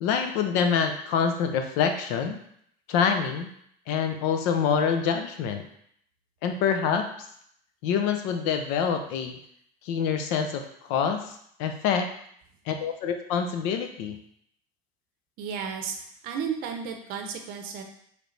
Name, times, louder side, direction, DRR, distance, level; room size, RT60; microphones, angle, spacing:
voice 1, 0.0-2.4 2.9-3.5 3.9-5.6 6.4-7.1 7.8-9.4 9.8-12.1 12.7-14.2, left 7 dB, 65° left, 6 dB, 0.7 m, -26 dB
voice 2, 15.4-16.0 16.2-17.8, right 7 dB, 50° right, 4 dB, 0.7 m, -33 dB
5.0 x 3.3 x 3.2 m, 0.68 s
cardioid pair, 175°, 19 cm